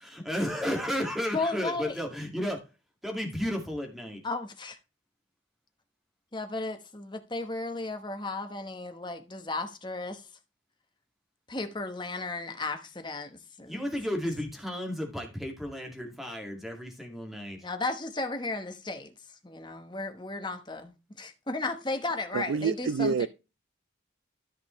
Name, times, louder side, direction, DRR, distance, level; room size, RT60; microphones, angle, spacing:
voice 1, 0.0-2.6 3.0-4.2 13.7-17.7, equal, ahead, 2.1 m, -33 dB
voice 2, 1.3-2.0 4.2-4.8 6.3-10.2 11.5-13.8 17.6-19.1 19.4-23.3, left 3 dB, 20° left, 1.1 m, -34 dB
voice 3, 22.3-23.3, right 5 dB, 75° right, 0.4 m, -27 dB
13.5 x 5.3 x 3.1 m
head